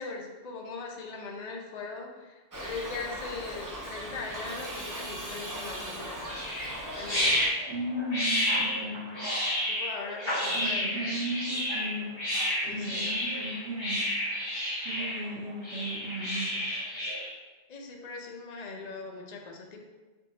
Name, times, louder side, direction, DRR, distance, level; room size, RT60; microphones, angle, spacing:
voice 1, 0.0-6.3 6.9-7.5 9.7-11.1 12.6-13.1 17.7-19.8, left 4 dB, 45° left, 1 dB, 0.6 m, -40 dB
Shout / Livestock farm animals working animals, 2.5-7.5, right 1 dB, 35° right, 0.3 m, -39 dB
sound 1, 6.3-17.3, left 1 dB, 25° left, 1.1 m, -30 dB
voice 2, 7.7-9.2 10.5-12.2 12.6-14.1 14.8-16.7, right 1 dB, 70° right, -5 dB, 1.0 m, -36 dB
3.6 x 3.6 x 3.9 m, 1.2 s
omnidirectional pair, 1.2 m